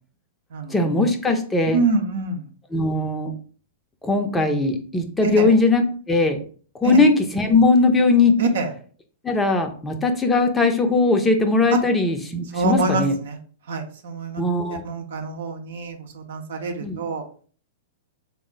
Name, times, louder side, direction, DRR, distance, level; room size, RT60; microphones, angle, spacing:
voice 1, 0.7-1.8 2.7-3.3 4.0-6.4 6.8-8.4 9.2-13.2 14.4-14.8 16.8-17.0, left 3 dB, 10° left, 5 dB, 0.5 m, -19 dB
voice 2, 1.7-2.4 5.2-5.5 6.8-7.0 8.4-8.7 11.7-11.8 12.5-13.4 13.7-14.4 14.8-17.2, right 3 dB, 65° right, 4 dB, 0.7 m, -25 dB
3.5 x 2.0 x 3.9 m, 0.43 s
hypercardioid pair, 105°, 0 cm